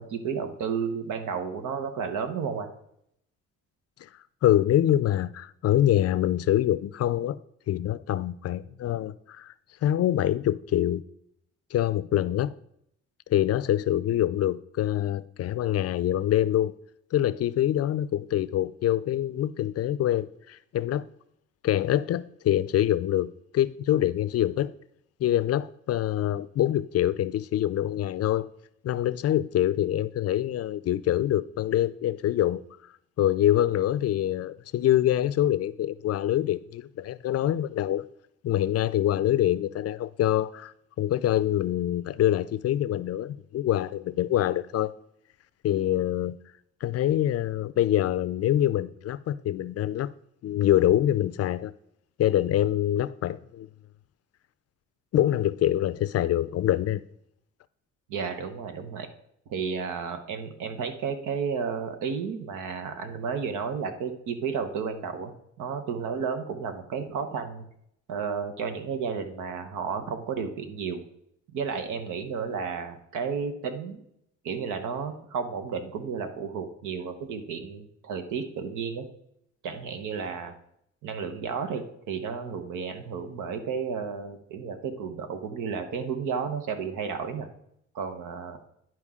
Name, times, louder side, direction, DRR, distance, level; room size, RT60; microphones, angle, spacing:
voice 1, 0.0-2.7 58.1-59.1 59.5-65.3 65.6-67.6 68.1-71.0 71.5-74.0 74.4-79.0 79.6-80.5 81.0-87.5 87.9-88.6, right 6 dB, 85° right, 1.1 m, -32 dB
voice 2, 4.4-7.4 7.7-9.5 9.8-11.0 11.7-12.5 13.3-16.7 17.1-21.1 21.6-24.7 25.2-28.5 28.8-32.6 33.2-38.0 38.4-44.9 45.6-46.4 46.8-50.1 50.4-51.7 52.2-53.7 55.1-57.0, left 12 dB, 55° left, 0.4 m, -25 dB
11.0 x 4.6 x 3.6 m
cardioid pair, 90°, 30 cm